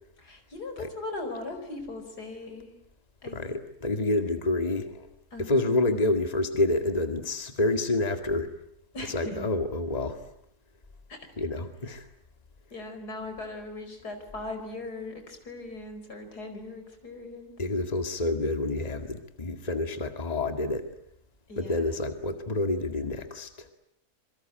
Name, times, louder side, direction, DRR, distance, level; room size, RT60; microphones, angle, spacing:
voice 1, 0.2-2.7 3.2-3.4 5.3-5.8 8.9-9.5 11.1-11.2 12.7-17.5 21.5-22.0, left 2 dB, 85° left, 7 dB, 5.4 m, -39 dB
voice 2, 3.3-5.1 5.4-8.5 9.1-10.2 11.4-12.1 17.6-20.9 21.6-23.7, left 2 dB, 25° left, 7 dB, 2.1 m, -28 dB
27.0 x 24.0 x 9.1 m, 0.72 s
omnidirectional pair, 1.7 m